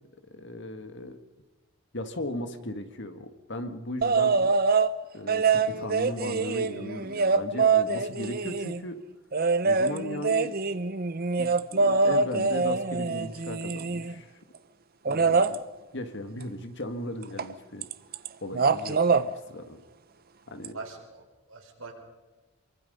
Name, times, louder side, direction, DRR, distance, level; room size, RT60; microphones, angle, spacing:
voice 1, 0.3-1.2 1.9-4.5 5.1-9.0 9.6-10.5 11.4-14.3 15.1-15.6 15.9-17.9 18.4-19.0 19.5-19.8 20.5-20.7, left 1 dB, 55° left, 8 dB, 1.8 m, -37 dB
sound 1, 4.0-4.9 5.3-8.8 9.3-14.2 15.1-15.6 17.4-17.5 17.8-18.3 18.5-19.3 20.6-20.7, right 4 dB, 45° right, 0.7 m, -24 dB
voice 2, 20.7-21.9, right 4 dB, 70° right, 0 dB, 5.8 m, -43 dB
25.5 x 24.0 x 5.5 m, 1.2 s
head